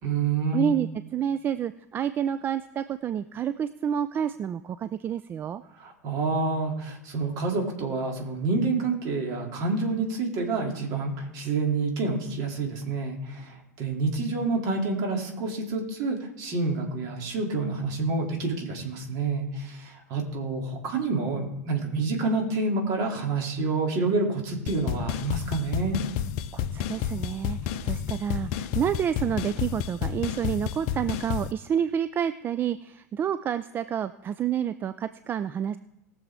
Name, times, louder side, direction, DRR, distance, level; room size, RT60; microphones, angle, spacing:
voice 1, 0.0-0.7 5.7-26.0, right 3 dB, 45° right, 1 dB, 2.8 m, -28 dB
voice 2, 0.5-5.6 26.5-35.8, right 9 dB, 25° right, 13 dB, 0.3 m, -29 dB
sound 1, 24.7-31.5, left 10 dB, 45° left, 0.6 m, -30 dB
19.5 x 6.9 x 3.6 m, 0.86 s
figure-of-eight pair, 90°, 9 cm